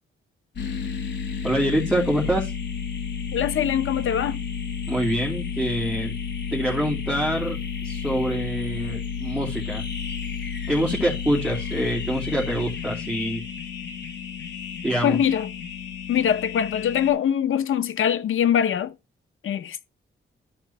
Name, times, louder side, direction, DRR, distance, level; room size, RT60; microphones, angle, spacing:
sound 1, 0.6-17.1, left 6 dB, 60° left, 3.9 m, -32 dB
voice 1, 1.4-2.5 4.9-6.2 6.5-7.6 7.8-9.8 10.7-13.4 14.8-15.2, equal, 5° right, 2.6 m, -25 dB
voice 2, 3.3-4.4 15.0-15.5 16.1-18.9 19.4-19.9, left 9 dB, 75° left, 1.0 m, -23 dB
13.0 x 4.6 x 4.3 m
wide cardioid pair, 125°, 21 cm